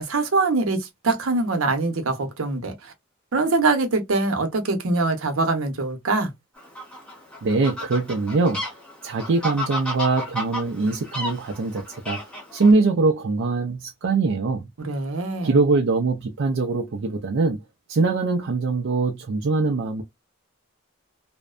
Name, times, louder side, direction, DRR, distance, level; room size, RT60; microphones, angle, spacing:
voice 1, 0.0-2.9 3.3-6.3 14.8-15.6, right 3 dB, 85° right, 0.8 m, -23 dB
Fowl, 6.6-12.7, left 1 dB, 5° left, 0.8 m, -33 dB
voice 2, 7.4-8.6 9.0-12.2 12.5-14.7 15.4-17.6 17.9-20.0, right 3 dB, 60° right, 0.4 m, -22 dB
2.5 x 2.1 x 2.4 m
head